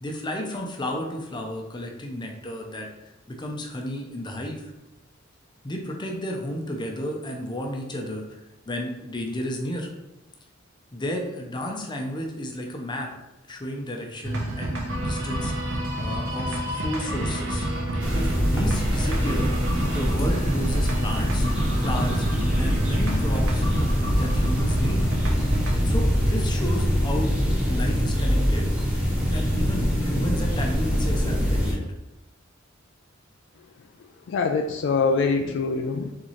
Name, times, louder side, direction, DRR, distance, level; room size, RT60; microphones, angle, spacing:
voice 1, 0.0-2.9 3.3-4.7 5.6-8.4 8.7-9.9 10.9-13.1 13.5-15.5 16.0-17.7 18.1-21.5 21.8-22.2 22.5-23.7 24.1-25.1 25.8-28.7 29.3-31.9, equal, 25° left, 2 dB, 0.6 m, -32 dB
sound 1, 14.2-31.3, right 1 dB, 65° right, 0.9 m, -30 dB
sound 2, 18.0-31.7, equal, 5° right, 1.1 m, -24 dB
voice 2, 34.3-36.1, left 4 dB, 60° left, 5 dB, 0.3 m, -24 dB
4.1 x 3.6 x 3.1 m, 0.94 s
head